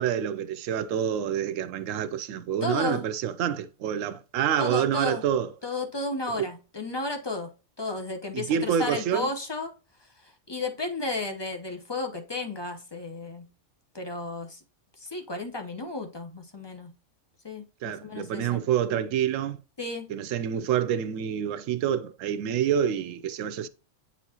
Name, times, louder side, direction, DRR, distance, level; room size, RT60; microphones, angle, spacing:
voice 1, 0.0-5.5 6.3-6.5 8.3-9.3 17.8-19.6 20.1-23.7, right 9 dB, 85° right, 1.0 m, -27 dB
voice 2, 2.6-3.1 4.6-5.2 5.6-7.5 7.8-9.7 10.2-13.5 13.9-14.6 15.0-16.9 17.4-18.6 19.8-20.1, left 2 dB, 25° left, 0.6 m, -33 dB
8.7 x 4.2 x 2.8 m
omnidirectional pair, 1.3 m